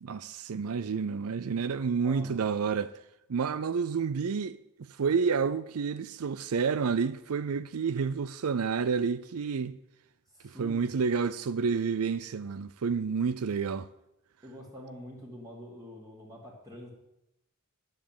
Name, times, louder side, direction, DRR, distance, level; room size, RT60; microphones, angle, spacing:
voice 1, 0.0-2.9 3.3-9.8 10.4-13.9, right 5 dB, 75° right, 0.5 m, -29 dB
voice 2, 2.0-2.4 10.3-10.9 14.4-16.9, equal, 15° right, 2.1 m, -46 dB
10.5 x 7.3 x 9.0 m
head